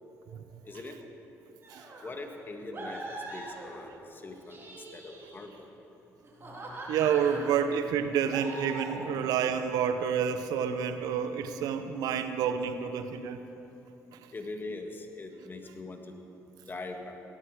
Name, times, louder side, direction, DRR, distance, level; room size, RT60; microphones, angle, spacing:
voice 1, 0.7-1.0 2.0-4.6 4.9-5.5 6.4-7.4 14.3-16.2 16.7-17.2, left 2 dB, 30° left, 4 dB, 1.8 m, -42 dB
sound 1, 1.6-2.1 2.7-4.0 4.4-5.6 6.2-7.6 8.3-9.1, right 2 dB, 40° right, 4.0 m, -42 dB
voice 2, 6.9-13.4, right 7 dB, 80° right, 9 dB, 0.8 m, -29 dB
17.0 x 13.0 x 4.9 m, 3.0 s
supercardioid pair, 65°, 6 cm